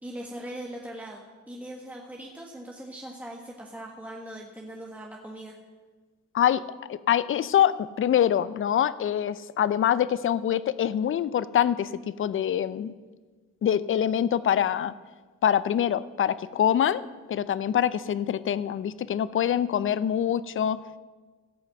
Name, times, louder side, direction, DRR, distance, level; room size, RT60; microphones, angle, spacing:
voice 1, 0.0-5.6, right 1 dB, 5° right, -1 dB, 1.5 m, -40 dB
voice 2, 6.9-12.9 13.6-14.9 15.4-17.0 17.3-20.8, left 10 dB, 45° left, 17 dB, 0.6 m, -25 dB
16.5 x 5.7 x 7.7 m, 1.4 s
cardioid pair, 90°, 30 cm